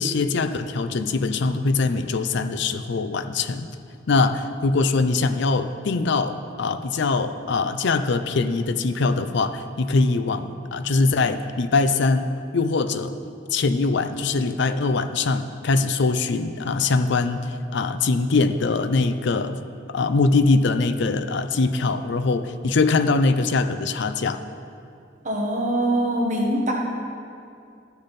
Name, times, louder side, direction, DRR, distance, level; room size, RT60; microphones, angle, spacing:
voice 1, 0.0-3.7 4.1-13.1 13.5-19.6 19.9-24.4, left 3 dB, 60° left, 10 dB, 0.5 m, -22 dB
voice 2, 25.2-26.7, right 1 dB, 40° right, -1 dB, 1.3 m, -23 dB
13.0 x 6.6 x 4.1 m, 2.4 s
head